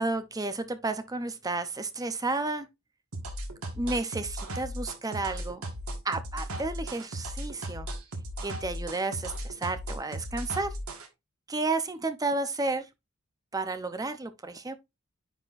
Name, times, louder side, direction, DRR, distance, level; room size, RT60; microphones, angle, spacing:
voice 1, 0.0-2.7 3.7-5.6 6.0-7.9 8.4-10.7 11.5-12.9 13.5-14.8, right 3 dB, 15° right, 0.6 m, -32 dB
sound 1, 3.1-11.1, right 1 dB, 85° right, 1.6 m, -36 dB
9.8 x 4.4 x 2.5 m
head